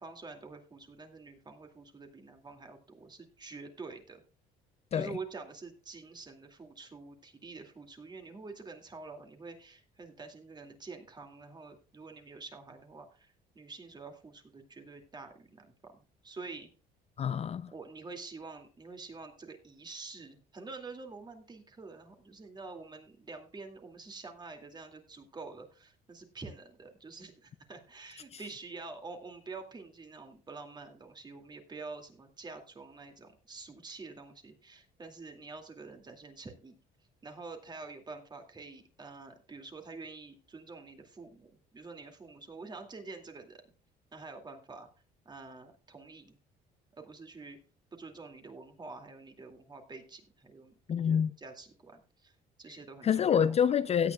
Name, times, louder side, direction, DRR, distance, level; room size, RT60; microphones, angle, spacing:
voice 1, 0.0-4.2 4.9-16.7 17.7-36.8 37.2-43.6 44.1-44.9 45.2-46.4 46.9-47.6 47.9-53.5, right 3 dB, 25° right, 2.4 m, -47 dB
voice 2, 17.2-17.7 50.9-51.3 53.0-54.1, left 8 dB, 40° left, 0.5 m, -27 dB
16.5 x 9.1 x 2.3 m
cardioid pair, 110°, 17 cm